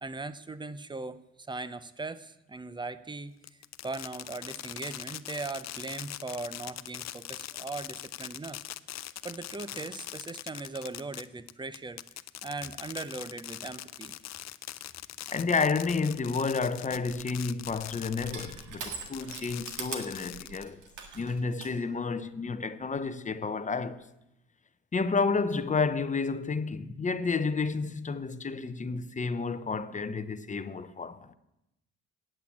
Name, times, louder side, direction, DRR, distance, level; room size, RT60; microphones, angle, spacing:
voice 1, 0.0-3.3 3.8-8.6 9.2-12.0 12.4-14.1, right 3 dB, 15° right, 0.6 m, -39 dB
Fireworks, 3.4-18.6 19.1-20.9, left 13 dB, 60° left, 0.5 m, -42 dB
voice 2, 15.3-20.8 21.1-24.1 24.9-31.3, left 4 dB, 25° left, 0.7 m, -30 dB
Crushing, 16.9-21.7, right 5 dB, 80° right, 1.7 m, -43 dB
8.8 x 8.1 x 8.6 m
cardioid pair, 90°, 30 cm